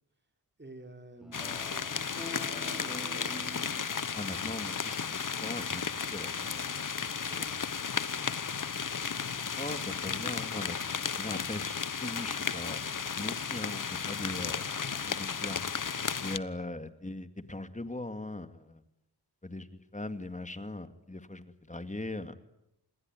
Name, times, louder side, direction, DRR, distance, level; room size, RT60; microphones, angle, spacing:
voice 1, 0.6-1.9 2.3-3.8 7.3-7.5 8.1-8.2, right 2 dB, 25° right, 6 dB, 4.1 m, -49 dB
Speech synthesizer, 1.2-4.2, left 1 dB, ahead, 6.5 m, -46 dB
sound 1, 1.3-16.4, left 6 dB, 50° left, 1.1 m, -34 dB
voice 2, 4.1-6.6 9.6-10.8 11.2-12.8 13.2-14.6 15.0-15.6 16.2-18.8 19.4-22.3, left 2 dB, 20° left, 10 dB, 2.2 m, -40 dB
28.0 x 20.0 x 9.7 m, 0.84 s
wide cardioid pair, 80°, 40 cm